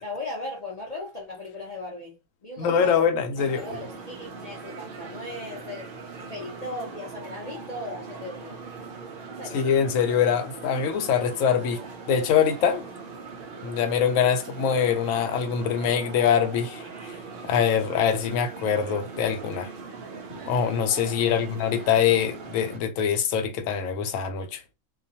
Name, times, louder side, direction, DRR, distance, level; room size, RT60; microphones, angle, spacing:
voice 1, 0.0-2.1 2.4-3.0 3.5-5.9 6.3-8.6 9.3-9.7 21.2-21.6, left 2 dB, 45° left, 0.5 m, -37 dB
voice 2, 2.6-3.7 9.5-11.8 12.1-12.9 13.6-17.1 17.4-19.7 20.4-24.6, left 7 dB, 70° left, 0.9 m, -24 dB
sound 1, 3.4-22.8, right 4 dB, 90° right, 0.4 m, -40 dB
2.3 x 2.3 x 2.6 m
omnidirectional pair, 1.5 m